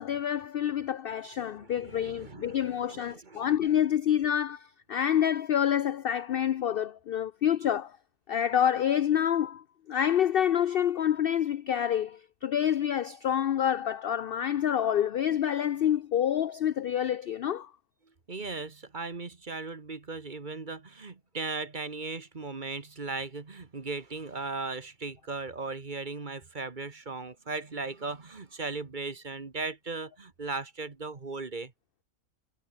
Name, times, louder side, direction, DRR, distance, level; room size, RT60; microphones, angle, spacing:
voice 1, 0.0-8.0 8.3-17.7, left 10 dB, 70° left, 0.5 m, -27 dB
voice 2, 1.6-3.5 18.3-31.7, right 3 dB, 35° right, 1.6 m, -37 dB
omnidirectional pair, 1.5 m